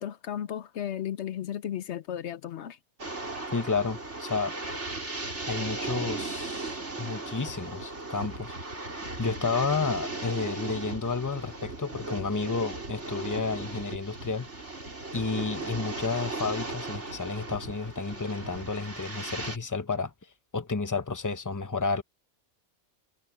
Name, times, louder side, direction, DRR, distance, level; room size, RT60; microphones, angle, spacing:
voice 1, 0.0-2.8, left 10 dB, 70° left, 1.0 m, -34 dB
sound 1, 3.0-19.6, right 2 dB, 75° right, 4.8 m, -37 dB
voice 2, 3.5-4.5 5.5-8.5 9.2-14.5 15.1-20.1 20.5-22.0, left 4 dB, 15° left, 1.0 m, -31 dB
omnidirectional pair, 1.2 m